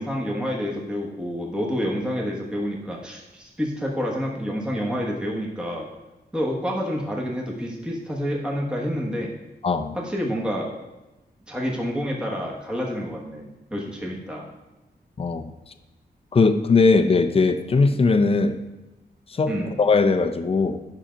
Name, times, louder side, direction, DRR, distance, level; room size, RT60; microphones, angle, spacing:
voice 1, 0.0-5.9 6.3-9.3 9.9-10.7 11.5-14.5 19.5-19.7, equal, 5° right, -3 dB, 1.2 m, -28 dB
voice 2, 9.6-10.0 15.2-15.5 16.3-18.6 19.3-19.5 19.8-20.8, left 4 dB, 35° left, 9 dB, 0.6 m, -19 dB
10.0 x 5.8 x 5.1 m, 1.0 s
wide cardioid pair, 160°, 17 cm